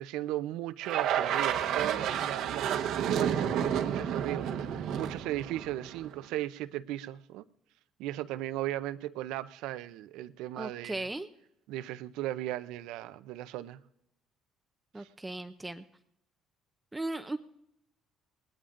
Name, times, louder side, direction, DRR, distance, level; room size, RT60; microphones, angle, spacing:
voice 1, 0.0-7.4 8.0-10.9 11.7-13.8 15.0-15.1, right 14 dB, 85° right, 13 dB, 0.6 m, -37 dB
sound 1, 0.8-6.2, right 9 dB, 65° right, 1.0 m, -30 dB
voice 2, 10.6-11.3 14.9-15.8 16.9-17.4, right 2 dB, 10° right, 9 dB, 0.5 m, -37 dB
20.0 x 19.5 x 2.6 m, 0.81 s
cardioid pair, 140°, 0 cm